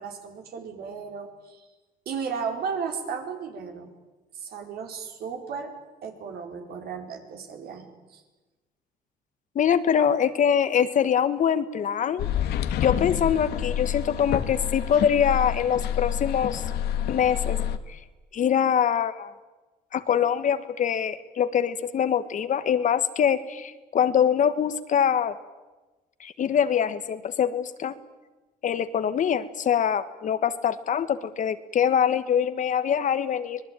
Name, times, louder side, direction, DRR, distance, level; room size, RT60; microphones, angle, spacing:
voice 1, 0.0-1.7 2.1-3.9 4.3-5.7 6.0-8.2, right 6 dB, 65° right, 4 dB, 4.5 m, -35 dB
voice 2, 9.5-12.3 12.8-16.6 17.1-17.6 17.9-18.0 18.3-19.3 19.9-25.4 26.2-27.9 28.6-33.6, left 8 dB, 50° left, 12 dB, 1.5 m, -24 dB
sound 1, 12.2-17.8, left 10 dB, 75° left, 1.6 m, -28 dB
25.0 x 20.0 x 9.1 m, 1.2 s
cardioid pair, 110°, 17 cm